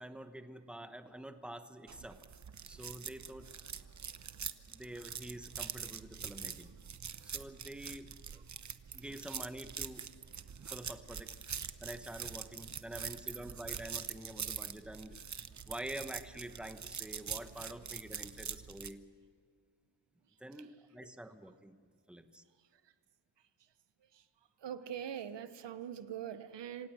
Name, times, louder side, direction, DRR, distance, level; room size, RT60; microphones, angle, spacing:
voice 1, 0.0-2.2 2.7-3.5 4.7-6.7 7.2-8.4 8.9-10.1 10.7-11.4 11.8-15.2 15.7-19.0 20.4-22.4, right 1 dB, ahead, 1.2 m, -47 dB
sound 1, 1.9-18.9, right 7 dB, 45° right, 0.9 m, -44 dB
voice 2, 22.6-22.9 23.4-23.7 24.0-24.3 24.6-26.9, right 9 dB, 85° right, 1.0 m, -44 dB
26.5 x 17.0 x 6.2 m
wide cardioid pair, 105°, 41 cm